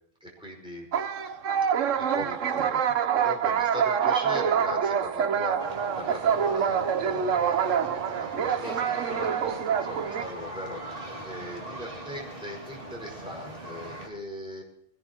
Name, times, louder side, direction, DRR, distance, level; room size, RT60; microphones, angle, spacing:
voice 1, 0.2-0.8 1.9-14.6, left 1 dB, 5° right, -2 dB, 5.0 m, -39 dB
sound 1, 0.9-10.2, right 8 dB, 65° right, 1.1 m, -26 dB
sound 2, 5.6-14.1, right 1 dB, 40° right, 2.5 m, -40 dB
24.0 x 17.5 x 2.9 m, 0.75 s
omnidirectional pair, 1.5 m